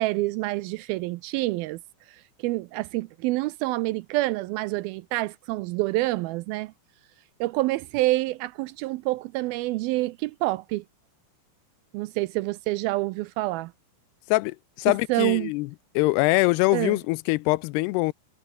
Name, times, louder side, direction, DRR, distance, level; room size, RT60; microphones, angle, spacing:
voice 1, 0.0-1.8 2.4-6.7 7.4-10.8 11.9-13.7 15.1-15.5 16.7-17.0, right 19 dB, 80° right, 2.2 m, -27 dB
voice 2, 14.3-15.7 16.0-18.1, left 22 dB, 90° left, 2.6 m, -23 dB
omnidirectional pair, 4.6 m